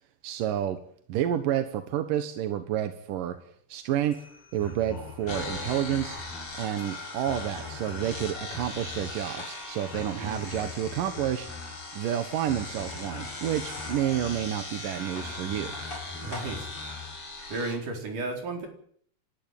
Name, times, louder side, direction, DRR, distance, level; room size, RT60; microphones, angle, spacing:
voice 1, 0.2-0.8 1.1-3.4 3.7-4.3 4.5-6.2 6.6-11.5 11.9-15.7, right 11 dB, 65° right, 9 dB, 2.5 m, -29 dB
sound 1, 3.9-17.2, left 4 dB, 60° left, 7.8 m, -44 dB
sound 2, 5.3-17.8, left 2 dB, 30° left, 6.0 m, -39 dB
voice 2, 10.0-10.6 16.2-16.7 17.5-18.7, right 2 dB, 50° right, 3 dB, 5.6 m, -34 dB
30.0 x 12.5 x 9.2 m, 0.62 s
omnidirectional pair, 4.9 m